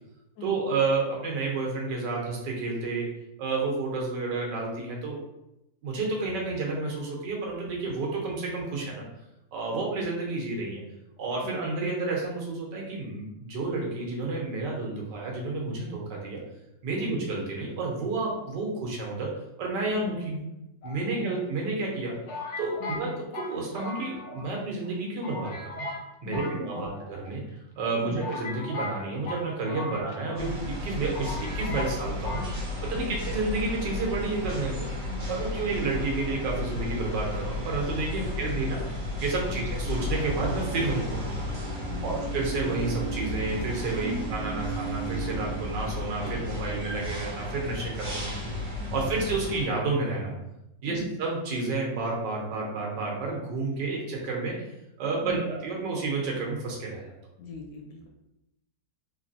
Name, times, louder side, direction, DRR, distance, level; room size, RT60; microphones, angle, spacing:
voice 1, 0.4-3.1 3.4-5.2 5.8-9.0 9.5-10.8 11.2-16.4 16.8-20.4 20.8-22.2 22.6-25.9 26.2-27.4 27.8-32.4 32.8-34.9 35.3-38.8 39.2-41.4 42.0-48.3 48.9-50.3 50.8-54.7 55.0-57.1, right 3 dB, 90° right, -1 dB, 1.5 m, -30 dB
sound 1, 20.8-21.6 22.3-24.6 24.8-24.9 25.2-26.0 26.3-27.3 27.8-27.9 28.2-30.5 30.8-30.9 31.1-32.0 32.2-32.5, left 2 dB, 60° left, 0.8 m, -37 dB
voice 2, 26.2-27.0 28.0-28.2 29.9-30.0 33.0-33.2 35.1-35.4 38.2-38.3 39.5-39.7 41.9-42.3 44.0-44.2 49.0-49.2 50.9-51.1 55.2-55.4 57.4-58.1, equal, 85° left, 1 dB, 1.4 m, -38 dB
sound 2, 30.3-49.6, left 2 dB, 50° right, 1.5 m, -34 dB
sound 3, 39.8-46.1, right 3 dB, 65° right, 1.2 m, -37 dB
3.5 x 3.3 x 2.6 m, 0.88 s
omnidirectional pair, 1.8 m